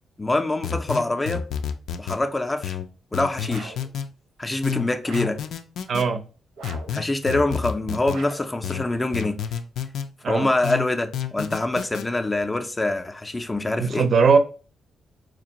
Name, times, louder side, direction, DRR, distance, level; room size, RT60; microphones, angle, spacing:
voice 1, 0.2-1.4 2.0-2.8 3.1-3.7 4.4-5.4 6.9-9.3 10.3-14.1, left 2 dB, 15° left, 0.4 m, -25 dB
sound 1, 0.6-2.2 2.6-4.1 4.6-6.1 6.6-8.2 8.6-10.1 10.6-12.1, left 8 dB, 85° left, 0.4 m, -30 dB
sound 2, 3.5-3.9 5.0-5.5 6.6-7.0 8.1-8.6, right 4 dB, 90° right, 0.7 m, -41 dB
voice 2, 5.9-6.2 10.2-10.5 13.8-14.4, right 5 dB, 45° right, 0.5 m, -19 dB
4.4 x 2.5 x 2.9 m
wide cardioid pair, 165°, 0 cm